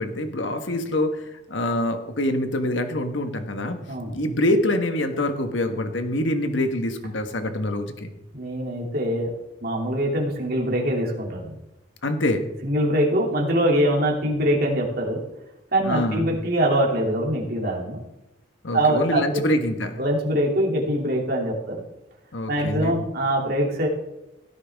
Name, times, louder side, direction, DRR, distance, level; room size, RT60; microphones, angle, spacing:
voice 1, 0.0-3.8 4.1-8.1 12.0-12.4 15.8-16.3 18.6-20.0 22.3-23.0, left 1 dB, 80° left, 6 dB, 1.4 m, -25 dB
voice 2, 3.9-4.2 8.3-9.3 9.6-11.5 12.6-15.2 15.7-18.0 18.7-19.4 20.0-21.7 22.5-23.9, right 1 dB, 50° right, -1 dB, 2.8 m, -23 dB
16.5 x 9.6 x 3.6 m, 0.93 s
head